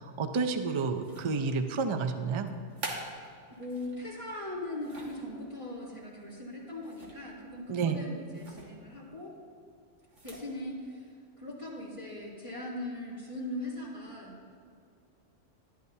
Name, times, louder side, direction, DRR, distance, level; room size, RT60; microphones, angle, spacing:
voice 1, 0.2-2.5 7.7-8.0, right 4 dB, 50° right, 8 dB, 0.3 m, -30 dB
sound 1, 1.0-1.6 2.5-4.0 4.5-5.3 6.8-7.3 7.6-7.8 8.3-8.7 10.0-10.5, right 2 dB, 80° right, 1.7 m, -44 dB
voice 2, 3.5-9.4 10.2-11.1 11.4-14.3, left 1 dB, 25° right, -11 dB, 2.6 m, -40 dB
12.0 x 11.5 x 2.7 m, 2.3 s
omnidirectional pair, 1.2 m